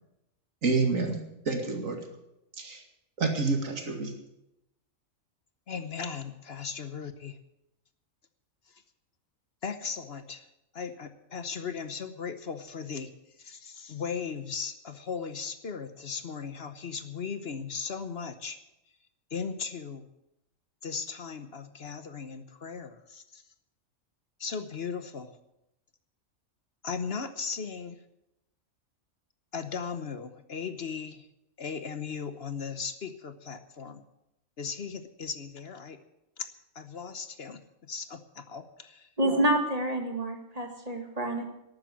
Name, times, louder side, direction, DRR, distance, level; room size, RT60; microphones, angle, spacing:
voice 1, 0.6-1.2 1.5-2.0 2.6-2.8 3.2-4.1, right 3 dB, 90° right, 3 dB, 2.5 m, -28 dB
voice 2, 5.7-7.4 8.7-8.8 9.6-10.5 10.7-13.1 13.4-18.6 19.3-20.1 20.8-23.4 24.4-25.4 26.8-28.0 29.5-31.3 31.6-34.0 34.6-36.0 36.4-36.5 36.7-39.1, left 6 dB, 55° left, 10 dB, 1.1 m, -37 dB
voice 3, 39.2-41.4, right 1 dB, 30° right, 3 dB, 2.2 m, -28 dB
12.5 x 9.1 x 9.5 m, 0.86 s
omnidirectional pair, 1.3 m